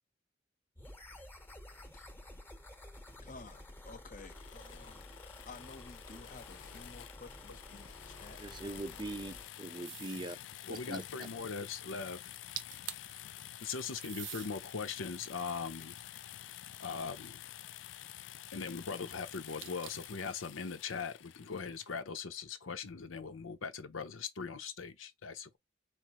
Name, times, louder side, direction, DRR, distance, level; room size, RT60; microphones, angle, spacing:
sound 1, 0.8-9.5, left 1 dB, 10° left, 0.9 m, -52 dB
voice 1, 3.2-5.1 5.5-8.8, left 4 dB, 40° left, 0.8 m, -53 dB
sound 2, 4.3-22.0, left 12 dB, 70° left, 0.3 m, -50 dB
voice 2, 8.4-10.4 10.7-11.0, right 2 dB, 25° right, 0.5 m, -41 dB
sound 3, 9.8-10.3 12.3-12.4 12.6-13.2 14.0-14.5 15.2-16.7 19.6-20.2, right 11 dB, 65° right, 0.6 m, -45 dB
voice 3, 10.6-12.2 13.6-16.0 16.8-17.5 18.5-25.6, left 5 dB, 85° left, 0.7 m, -40 dB
4.6 x 3.2 x 3.0 m
head